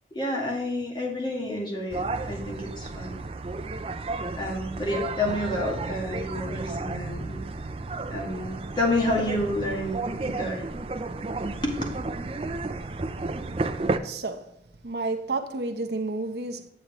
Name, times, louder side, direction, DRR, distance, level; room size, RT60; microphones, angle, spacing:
voice 1, 0.1-3.2 4.3-7.4 8.1-10.0 10.2-10.6 11.6-11.7, left 1 dB, 25° left, 1.9 m, -29 dB
sound 1, 1.9-14.0, right 3 dB, 30° right, 0.4 m, -32 dB
voice 2, 14.0-14.4 14.8-16.7, right 3 dB, 70° right, 0.8 m, -30 dB
9.1 x 8.1 x 3.0 m
head